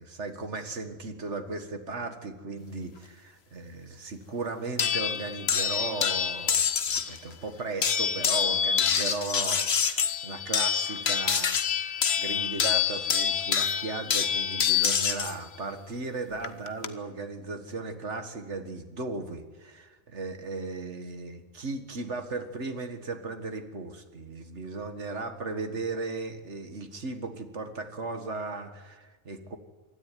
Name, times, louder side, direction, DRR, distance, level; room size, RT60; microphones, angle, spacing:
voice 1, 0.0-29.6, right 3 dB, 75° right, 7 dB, 2.1 m, -36 dB
sound 1, 4.8-7.2 7.8-15.3 16.4-16.9, left 7 dB, 65° left, 1.3 m, -26 dB
25.0 x 13.5 x 9.3 m, 1.2 s
omnidirectional pair, 1.2 m